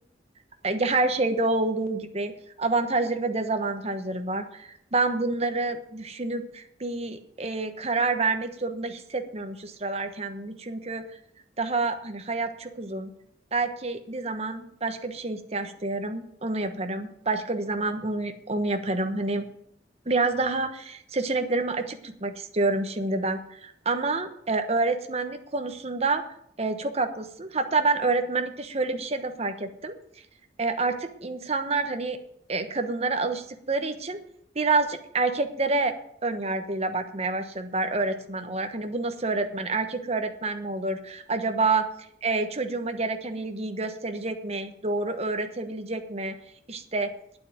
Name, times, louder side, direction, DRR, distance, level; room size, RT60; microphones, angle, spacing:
voice 1, 0.6-11.0 11.6-13.1 13.5-19.5 20.1-26.2 26.6-29.9 30.6-32.2 32.5-34.2 34.5-35.9 36.2-41.8 42.2-46.4 46.7-47.1, right 3 dB, 35° right, 7 dB, 1.2 m, -28 dB
9.3 x 8.3 x 8.8 m, 0.70 s
head